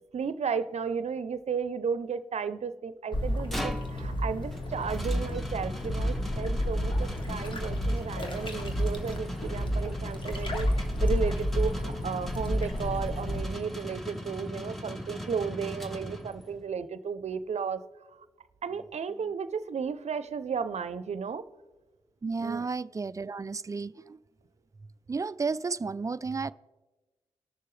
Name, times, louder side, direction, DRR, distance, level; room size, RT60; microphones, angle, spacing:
voice 1, 0.1-10.7 11.0-17.8 18.6-21.5 22.4-22.6, right 6 dB, 60° right, 13 dB, 0.6 m, -34 dB
sound 1, 3.1-13.4, equal, 40° left, 1.6 m, -30 dB
sound 2, 3.2-16.7, equal, ahead, 1.2 m, -40 dB
voice 2, 22.2-24.2 25.1-26.5, right 4 dB, 25° right, 17 dB, 0.3 m, -32 dB
19.5 x 6.7 x 3.3 m, 1.2 s
supercardioid pair, 45°, 13 cm